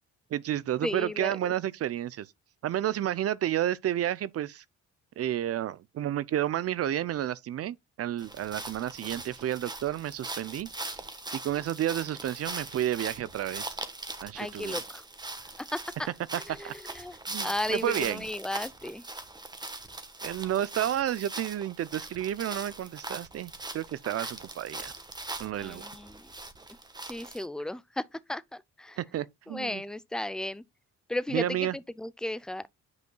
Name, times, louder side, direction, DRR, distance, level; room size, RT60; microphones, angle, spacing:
voice 1, 0.3-2.3 2.6-4.6 5.2-10.7 11.3-13.8 14.2-14.8 16.3-16.7 17.3-18.3 20.2-24.9 25.4-25.9 29.0-29.8 31.3-31.8, right 11 dB, 55° right, 0.5 m, -31 dB
voice 2, 0.8-1.5 14.4-15.0 15.7-16.1 16.3-17.2 17.4-19.0 24.2-24.3 25.6-26.3 27.1-28.0 28.3-29.0 29.5-30.6 31.1-32.6, left 1 dB, ahead, 0.4 m, -35 dB
sound 1, 8.2-27.4, right 2 dB, 15° right, 1.1 m, -41 dB
9.4 x 5.2 x 2.2 m
cardioid pair, 90°, 30 cm